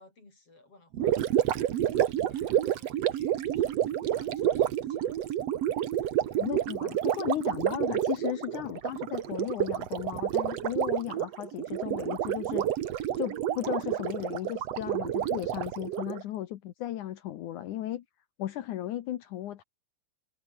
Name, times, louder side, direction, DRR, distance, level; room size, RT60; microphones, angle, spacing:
voice 1, 0.0-6.4, left 2 dB, 40° left, 8.6 m, -59 dB
Gurgling, 0.9-16.2, right 11 dB, 60° right, 2.1 m, -29 dB
voice 2, 6.4-12.7 13.2-18.0 18.4-19.6, left 13 dB, 70° left, 2.4 m, -35 dB
omnidirectional pair, 3.9 m